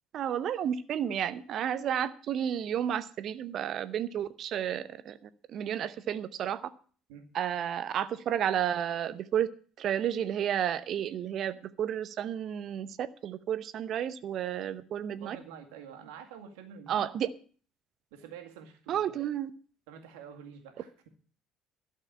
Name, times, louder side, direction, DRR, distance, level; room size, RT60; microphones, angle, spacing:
voice 1, 0.1-5.2 5.5-6.6 7.3-9.5 9.8-15.4 16.9-17.3 18.9-19.5, right 9 dB, 50° right, 14 dB, 0.8 m, -31 dB
voice 2, 15.1-17.1 18.1-19.2 19.9-21.1, right 7 dB, 70° right, 4 dB, 2.0 m, -48 dB
12.5 x 6.7 x 8.5 m, 0.42 s
figure-of-eight pair, 55°, 0 cm